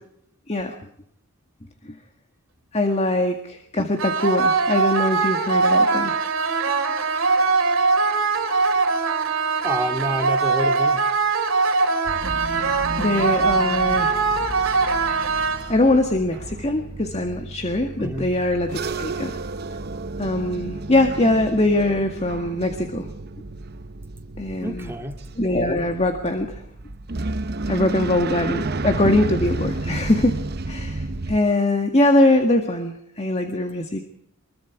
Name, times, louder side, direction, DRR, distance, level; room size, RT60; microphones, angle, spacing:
voice 1, 2.7-6.2 13.0-14.2 15.7-19.4 20.2-23.1 24.4-24.9 25.4-26.6 27.7-30.4 30.7-34.0, left 1 dB, 30° left, 5 dB, 1.9 m, -22 dB
sound 1, 4.0-16.0, right 4 dB, 65° right, 3.7 m, -21 dB
voice 2, 9.6-11.1 18.0-18.3 24.6-25.2, equal, 10° right, 4 dB, 2.1 m, -28 dB
sound 2, 12.0-31.4, right 2 dB, 45° right, 0.9 m, -32 dB
24.5 x 22.0 x 4.8 m, 0.70 s
head